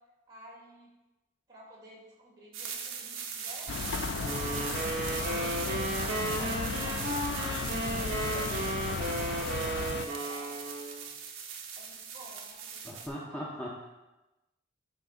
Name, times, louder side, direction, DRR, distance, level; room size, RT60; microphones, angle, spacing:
voice 1, 0.3-0.9 1.5-10.5 10.9-11.0 11.7-13.6, right 1 dB, 20° right, -8 dB, 2.7 m, -51 dB
sound 1, 2.5-13.1, right 6 dB, 80° right, 0.8 m, -40 dB
sound 2, 3.7-10.1, left 5 dB, 55° left, 0.3 m, -35 dB
sound 3, 4.2-11.0, right 2 dB, 60° right, 1.5 m, -34 dB
voice 2, 12.8-13.9, equal, 5° left, -5 dB, 0.7 m, -39 dB
11.5 x 5.2 x 2.5 m, 1.0 s
head